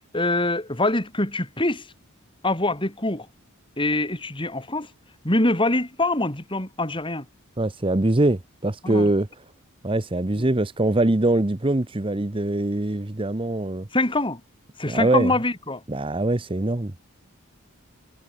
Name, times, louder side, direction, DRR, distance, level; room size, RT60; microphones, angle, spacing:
voice 1, 0.1-1.9 2.4-3.3 3.8-4.9 5.2-7.3 8.8-9.1 10.4-10.5 13.9-14.4 14.8-15.8, left 2 dB, 20° left, 4.6 m, -24 dB
voice 2, 7.6-9.3 9.8-13.9 14.8-15.3 15.9-16.9, right 2 dB, 25° right, 0.9 m, -23 dB
head